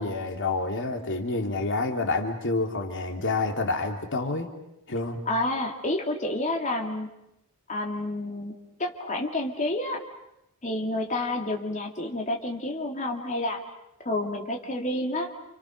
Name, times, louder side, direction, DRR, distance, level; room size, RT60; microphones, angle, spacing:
voice 1, 0.0-4.5 4.9-5.2, left 3 dB, 60° left, 4 dB, 2.9 m, -28 dB
voice 2, 5.3-7.1 7.7-8.5 8.8-10.0 10.6-13.6 14.0-15.3, left 1 dB, 35° left, 1 dB, 2.7 m, -29 dB
30.0 x 28.5 x 6.6 m, 0.84 s
head